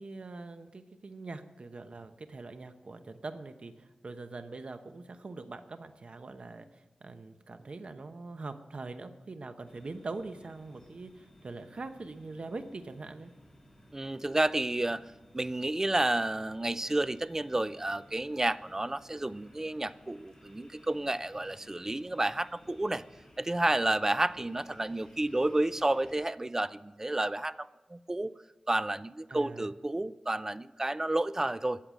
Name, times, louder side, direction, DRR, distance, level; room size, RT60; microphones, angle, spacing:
voice 1, 0.0-13.3 29.3-29.7, right 3 dB, 55° right, 8 dB, 1.0 m, -43 dB
sound 1, 9.6-26.1, equal, 25° left, 3.1 m, -58 dB
voice 2, 13.9-23.0 23.4-28.4 28.7-31.8, right 1 dB, 20° right, 16 dB, 0.4 m, -31 dB
13.0 x 8.8 x 7.5 m, 1.1 s
wide cardioid pair, 100°, 2 cm